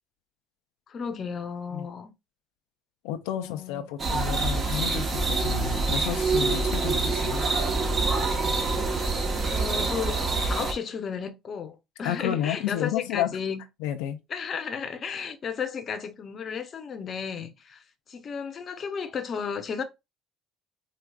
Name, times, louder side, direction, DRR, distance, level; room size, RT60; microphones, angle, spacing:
voice 1, 0.9-2.1 3.3-3.8 9.4-10.2 10.5-13.6 14.3-19.8, left 6 dB, 40° left, 0.7 m, -34 dB
voice 2, 3.0-7.4 12.0-13.4 13.8-14.2, left 11 dB, 90° left, 0.4 m, -31 dB
sound 1, 4.0-10.7, right 3 dB, 35° right, 1.0 m, -26 dB
4.6 x 2.4 x 2.3 m
supercardioid pair, 100°, 0 cm